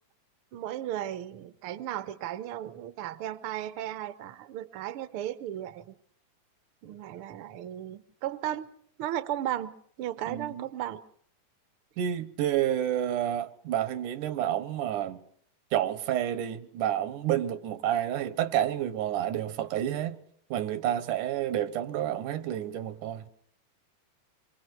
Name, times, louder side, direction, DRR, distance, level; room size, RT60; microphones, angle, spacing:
voice 1, 0.5-6.0 6.8-8.7 9.0-11.0, right 12 dB, 65° right, 1.5 m, -35 dB
voice 2, 10.3-10.6 12.0-15.2 15.7-20.2 20.5-23.3, right 11 dB, 90° right, 2.6 m, -29 dB
26.5 x 23.5 x 4.5 m
omnidirectional pair, 3.5 m